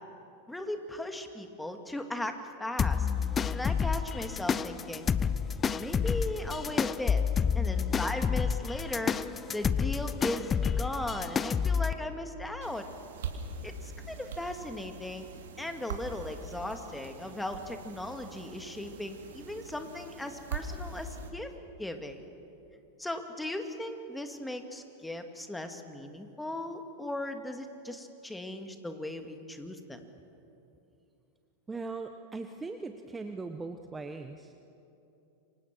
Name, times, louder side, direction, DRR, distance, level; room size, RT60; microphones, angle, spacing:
voice 1, 0.5-3.1 3.5-5.1 5.7-7.2 7.5-9.2 9.5-12.9 13.6-15.3 15.6-21.5 21.8-22.2 23.0-30.0, left 1 dB, 5° left, 6 dB, 2.3 m, -37 dB
sound 1, 2.8-11.9, left 6 dB, 25° left, 0.8 m, -29 dB
sound 2, 12.6-21.3, right 4 dB, 70° right, 2.8 m, -42 dB
voice 2, 31.7-34.5, right 3 dB, 15° right, 6 dB, 1.2 m, -39 dB
28.5 x 24.5 x 6.2 m, 2.8 s
hypercardioid pair, 95°, 0 cm